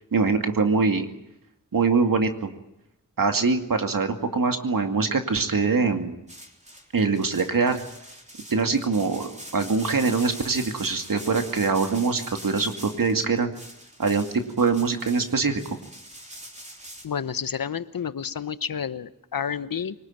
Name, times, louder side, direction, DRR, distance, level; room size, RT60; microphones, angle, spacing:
voice 1, 0.1-1.1 1.7-2.5 3.2-6.1 6.9-7.8 8.5-13.5 14.0-14.3 14.6-15.8, right 4 dB, 70° right, 5 dB, 2.4 m, -23 dB
sound 1, 6.3-17.1, right 1 dB, 20° right, 3.5 m, -43 dB
voice 2, 17.0-19.9, left 7 dB, 80° left, 14 dB, 1.0 m, -30 dB
24.5 x 19.5 x 9.1 m, 0.83 s
wide cardioid pair, 75°, 34 cm